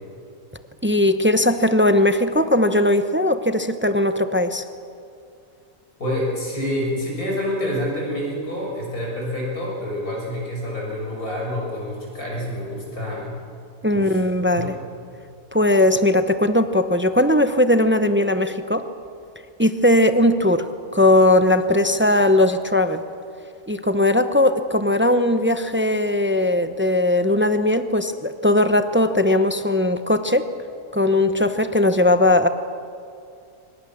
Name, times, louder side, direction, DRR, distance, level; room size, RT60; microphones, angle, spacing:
voice 1, 0.8-4.6 13.8-14.8 15.5-18.9 19.6-23.0 23.7-30.5 30.9-32.5, left 1 dB, 15° right, 9 dB, 0.4 m, -19 dB
voice 2, 6.0-13.4 13.9-14.2 14.5-14.7, left 1 dB, 70° left, -2 dB, 6.9 m, -27 dB
25.0 x 20.5 x 7.2 m, 2.5 s
omnidirectional pair, 1.6 m